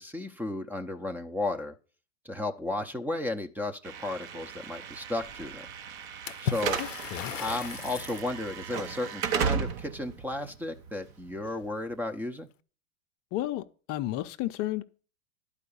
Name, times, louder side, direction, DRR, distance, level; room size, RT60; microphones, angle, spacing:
voice 1, 0.0-1.7 2.2-5.7 6.4-6.8 7.3-12.5, left 2 dB, 5° right, 0.7 m, -34 dB
Slam / Alarm, 3.8-11.9, right 7 dB, 50° right, 1.2 m, -35 dB
Water / Splash splatter, 6.3-8.3, left 9 dB, 90° left, 0.5 m, -36 dB
voice 2, 6.8-7.3 13.3-14.8, left 15 dB, 40° left, 0.7 m, -33 dB
11.5 x 4.9 x 7.0 m
hypercardioid pair, 100°, 37 cm